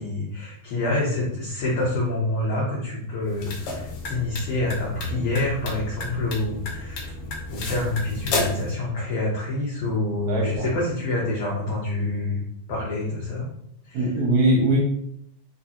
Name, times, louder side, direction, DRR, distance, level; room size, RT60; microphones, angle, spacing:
voice 1, 0.0-7.1 7.5-12.4 12.7-13.5 13.9-14.1, left 2 dB, 70° left, -5 dB, 1.3 m, -27 dB
sound 1, 3.2-8.7, left 3 dB, 90° left, 1.2 m, -32 dB
voice 2, 10.3-10.6 13.9-14.8, right 1 dB, 75° right, -2 dB, 1.5 m, -21 dB
6.3 x 2.2 x 2.8 m, 0.71 s
omnidirectional pair, 3.6 m